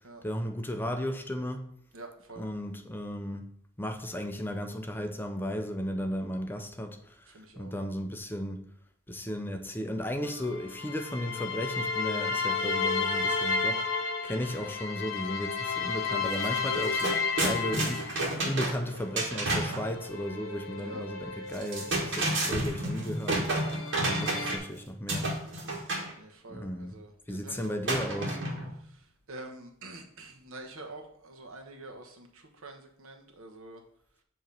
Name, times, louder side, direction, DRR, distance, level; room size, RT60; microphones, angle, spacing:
voice 1, 0.2-1.7 2.4-3.5 3.8-7.3 7.6-8.6 9.1-18.1 18.4-23.5 24.0-25.3 26.5-27.0 27.3-28.4, equal, 10° left, 0.5 m, -35 dB
voice 2, 1.9-2.5 7.3-7.7 20.8-21.0 26.2-28.1 29.3-33.8, right 2 dB, 85° right, 1.1 m, -46 dB
sound 1, 10.2-18.5 19.0-22.9 23.3-24.6, left 4 dB, 75° left, 0.8 m, -33 dB
sound 2, 16.3-16.5 16.7-19.9 21.5-24.7 25.1-26.1 27.9-28.8, right 1 dB, 60° right, 1.6 m, -30 dB
7.2 x 3.0 x 5.3 m
head